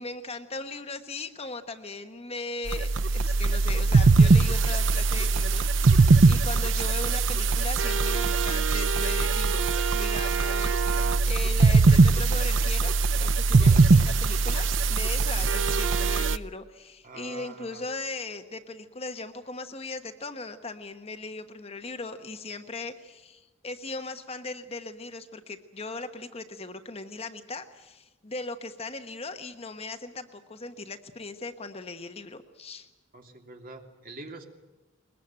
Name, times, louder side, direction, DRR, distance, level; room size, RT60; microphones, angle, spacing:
voice 1, 0.0-32.9, left 3 dB, 30° left, 8 dB, 1.2 m, -38 dB
sound 1, 2.7-16.4, right 3 dB, 70° right, 0.7 m, -21 dB
voice 2, 17.0-17.8 33.1-34.5, right 2 dB, 45° right, 3 dB, 2.9 m, -45 dB
21.5 x 21.0 x 8.9 m, 1.1 s
head